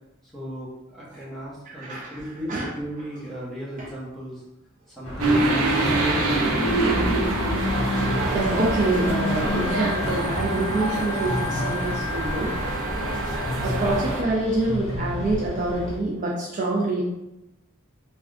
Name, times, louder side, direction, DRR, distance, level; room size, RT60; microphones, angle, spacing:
voice 1, 0.2-4.4 4.9-6.1, equal, ahead, -9 dB, 0.9 m, -36 dB
voice 2, 1.8-2.2 2.5-2.7 3.8-3.9 8.3-12.7 13.6-17.0, right 2 dB, 35° right, -4 dB, 0.5 m, -26 dB
sound 1, 5.0-16.0, left 1 dB, 65° left, 0.7 m, -30 dB
sound 2, 5.2-14.2, right 2 dB, 90° right, 0.5 m, -26 dB
Wind instrument woodwind instrument, 7.9-14.1, left 3 dB, 35° left, 0.5 m, -37 dB
3.5 x 2.3 x 2.4 m, 0.91 s
head